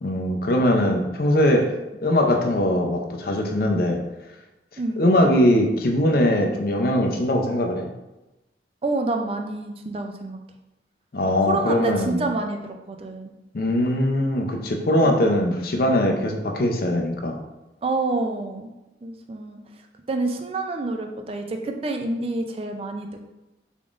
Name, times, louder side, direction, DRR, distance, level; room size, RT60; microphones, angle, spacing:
voice 1, 0.0-1.7 2.0-4.0 5.0-7.9 11.1-12.2 13.5-17.4, left 1 dB, 55° left, 3 dB, 0.5 m, -21 dB
voice 2, 8.8-10.4 11.2-13.3 15.0-15.3 17.8-18.7 19.0-19.6 20.1-23.1, right 2 dB, 30° right, 4 dB, 0.3 m, -28 dB
3.7 x 3.6 x 2.4 m, 0.99 s
head